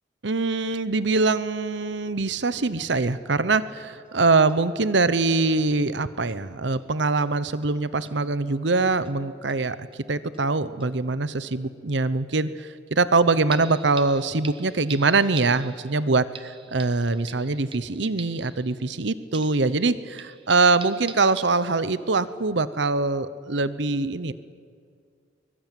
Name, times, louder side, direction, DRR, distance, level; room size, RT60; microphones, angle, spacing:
voice 1, 0.2-24.3, right 3 dB, 65° right, 15 dB, 0.9 m, -23 dB
sound 1, 4.1-4.2 4.5-4.6 4.9-5.0 5.4-5.5 6.3-6.4 6.7-6.9 7.2-7.3 7.6-7.7 8.1-8.2 9.0-9.2 9.5-10.0 10.3-10.4 10.8-10.9 13.5-19.0 19.3-22.1 22.5-22.6, right 6 dB, 25° right, 1.3 m, -44 dB
24.0 x 22.0 x 9.2 m, 2.2 s
head